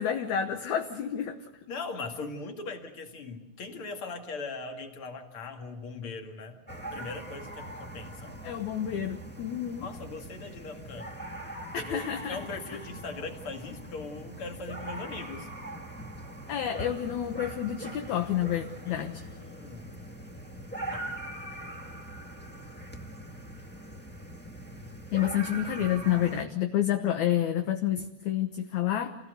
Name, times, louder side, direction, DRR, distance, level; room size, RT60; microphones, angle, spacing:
voice 1, 0.0-1.4 8.4-9.9 11.7-12.4 16.5-19.2 25.1-29.2, left 10 dB, 65° left, 5 dB, 2.1 m, -29 dB
voice 2, 1.7-6.6 6.9-8.4 9.8-11.1 11.7-15.5 18.9-20.0 20.9-21.1, left 3 dB, 40° left, 4 dB, 2.8 m, -40 dB
sound 1, 6.7-26.4, right 1 dB, 15° left, 0.4 m, -42 dB
28.0 x 17.5 x 8.1 m, 0.99 s
omnidirectional pair, 4.2 m